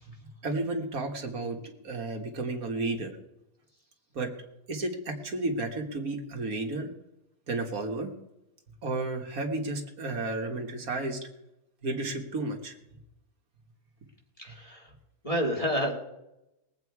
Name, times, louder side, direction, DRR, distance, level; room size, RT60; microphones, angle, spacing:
voice 1, 0.4-1.6 1.8-3.2 4.2-4.3 4.7-6.9 7.5-8.1 8.8-11.2 11.8-12.7, right 2 dB, 70° right, 3 dB, 2.0 m, -32 dB
voice 2, 14.4-14.9 15.2-15.9, equal, 20° left, 0 dB, 2.4 m, -29 dB
21.0 x 8.3 x 4.7 m, 0.89 s
omnidirectional pair, 1.6 m